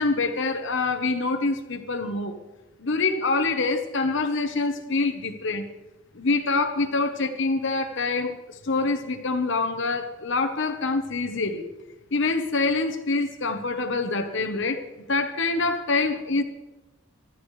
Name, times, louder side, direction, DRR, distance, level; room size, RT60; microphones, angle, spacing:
voice 1, 0.0-2.4 2.8-5.7 6.1-11.7 12.1-14.8 15.1-16.4, left 3 dB, 55° left, 7 dB, 1.0 m, -25 dB
23.5 x 12.5 x 3.2 m, 1.1 s
head